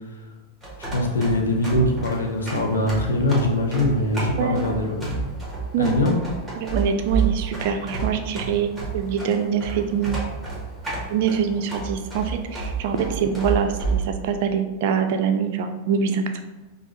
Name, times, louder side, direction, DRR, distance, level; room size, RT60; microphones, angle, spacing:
sound 1, 0.6-14.0, right 4 dB, 5° right, 1.3 m, -30 dB
voice 1, 0.9-5.2 5.8-6.1, left 1 dB, 70° left, 1 dB, 0.6 m, -22 dB
voice 2, 6.6-10.2 11.1-16.4, right 7 dB, 50° right, 7 dB, 0.4 m, -24 dB
5.1 x 2.3 x 3.1 m, 1.2 s
figure-of-eight pair, 90°, 0 cm